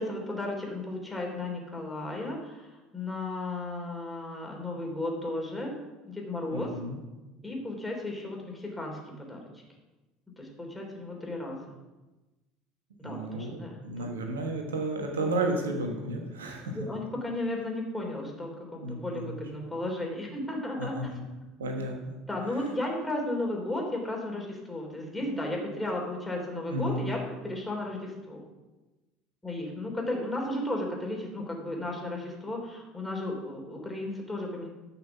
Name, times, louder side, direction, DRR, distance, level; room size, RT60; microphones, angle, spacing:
voice 1, 0.0-5.7 6.0-6.7 7.4-9.5 10.4-11.6 13.0-14.1 16.7-21.1 22.3-28.4 29.4-34.7, left 1 dB, 10° left, 0 dB, 3.3 m, -34 dB
voice 2, 6.5-7.0 13.0-16.8 18.8-19.3 20.8-21.2 21.6-22.2 26.7-27.2, right 2 dB, 75° right, 3 dB, 1.4 m, -32 dB
12.0 x 6.0 x 5.9 m, 1.1 s
figure-of-eight pair, 65°, 0 cm